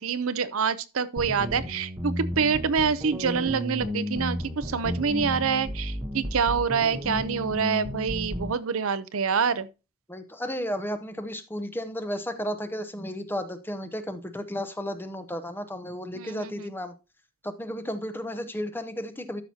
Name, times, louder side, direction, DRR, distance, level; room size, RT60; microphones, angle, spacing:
voice 1, 0.0-9.7 16.2-16.6, right 6 dB, 70° right, 0.6 m, -26 dB
sound 1, 1.2-8.5, equal, 10° right, 1.0 m, -33 dB
voice 2, 10.1-16.9 17.4-19.4, equal, 10° left, 0.7 m, -33 dB
12.5 x 6.0 x 2.8 m
head